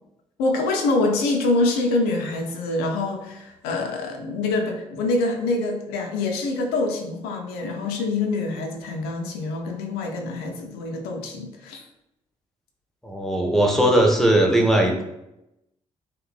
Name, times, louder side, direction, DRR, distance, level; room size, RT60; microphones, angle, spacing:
voice 1, 0.4-11.8, left 2 dB, 65° left, 2 dB, 0.4 m, -25 dB
voice 2, 13.0-15.0, right 1 dB, ahead, 2 dB, 0.6 m, -19 dB
3.0 x 2.0 x 2.3 m, 0.88 s
figure-of-eight pair, 40°, 17 cm